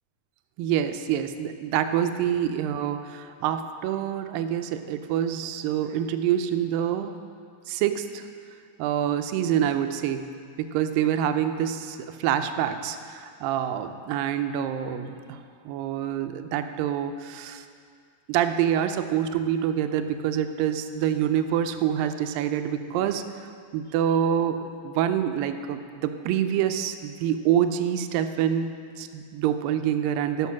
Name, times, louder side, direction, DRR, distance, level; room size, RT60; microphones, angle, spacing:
voice 1, 0.6-7.1 7.7-8.3 8.8-10.3 10.6-17.7 18.3-30.5, right 10 dB, 80° right, 9 dB, 2.2 m, -26 dB
12.5 x 5.8 x 5.9 m, 2.2 s
omnidirectional pair, 4.1 m